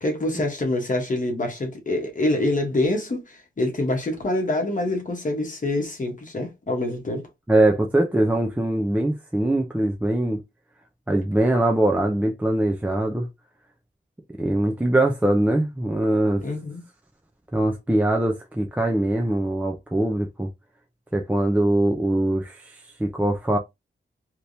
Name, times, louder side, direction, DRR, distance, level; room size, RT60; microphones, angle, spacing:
voice 1, 0.0-7.3 16.4-16.8, left 1 dB, 40° left, 1.1 m, -26 dB
voice 2, 7.5-10.4 11.1-13.3 14.4-16.4 17.5-20.5 21.1-23.6, right 1 dB, 5° right, 0.5 m, -22 dB
3.4 x 2.9 x 2.6 m
wide cardioid pair, 155°, 20 cm